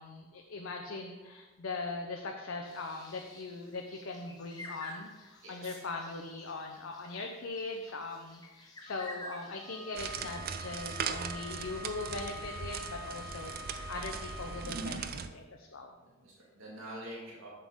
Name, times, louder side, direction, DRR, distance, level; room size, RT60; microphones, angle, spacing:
voice 1, 0.0-15.9, left 3 dB, 75° left, 2 dB, 0.7 m, -40 dB
sound 1, 2.6-10.3, left 1 dB, 20° left, 0.9 m, -50 dB
voice 2, 5.4-5.8 10.4-10.5 11.6-11.7 16.0-17.5, right 1 dB, 85° right, -4 dB, 1.9 m, -47 dB
Bowed string instrument, 9.6-14.9, left 2 dB, 70° right, 2.1 m, -46 dB
sound 2, 10.0-15.3, right 6 dB, 50° right, 0.4 m, -39 dB
7.4 x 6.9 x 3.6 m, 1.2 s
head